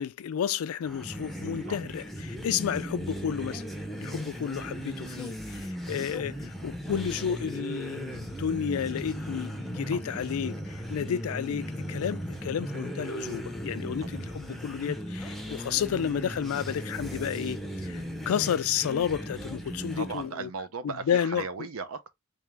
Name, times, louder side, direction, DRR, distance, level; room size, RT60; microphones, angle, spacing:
voice 1, 0.0-3.6 4.0-20.5 21.1-21.5, left 8 dB, 75° left, 0.3 m, -31 dB
sound 1, 0.8-20.3, equal, ahead, 0.6 m, -37 dB
voice 2, 20.0-22.2, right 4 dB, 75° right, 0.6 m, -37 dB
3.5 x 2.9 x 3.3 m
head